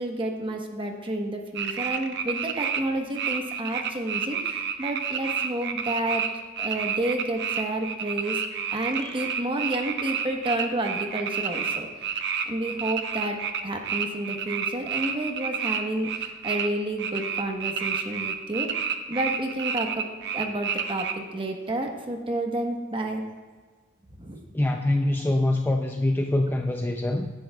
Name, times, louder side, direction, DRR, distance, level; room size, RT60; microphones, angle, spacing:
voice 1, 0.0-6.2 6.6-8.4 8.7-11.9 12.5-13.4 13.6-23.2 24.2-24.4, right 1 dB, 25° right, 2 dB, 1.2 m, -30 dB
sound 1, 1.5-2.8 3.1-6.3 6.6-16.7 17.0-21.1, right 7 dB, 55° right, 0.8 m, -29 dB
voice 2, 24.5-27.3, left 1 dB, 10° left, 3 dB, 0.4 m, -24 dB
16.5 x 10.5 x 2.4 m, 1.5 s
head